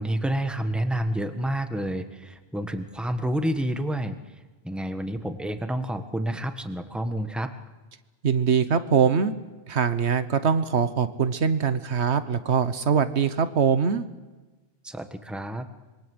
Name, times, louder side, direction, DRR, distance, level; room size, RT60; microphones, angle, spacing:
voice 1, 0.0-4.3 4.6-7.5 14.8-15.7, right 1 dB, ahead, 7 dB, 1.3 m, -29 dB
voice 2, 8.2-9.3 9.7-14.0, right 6 dB, 85° right, 11 dB, 1.4 m, -23 dB
26.0 x 22.5 x 8.0 m, 1.2 s
omnidirectional pair, 1.1 m